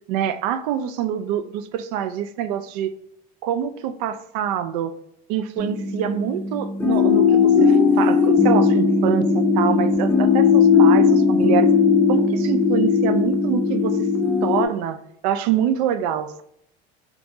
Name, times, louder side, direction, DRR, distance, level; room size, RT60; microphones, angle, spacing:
voice 1, 0.1-3.0 3.4-5.0 5.3-11.7 12.1-14.1 14.4-16.4, right 10 dB, 90° right, 0.4 m, -25 dB
sound 1, 5.6-14.6, left 5 dB, 10° left, 0.5 m, -18 dB
3.6 x 2.9 x 2.5 m
cardioid pair, 135°, 19 cm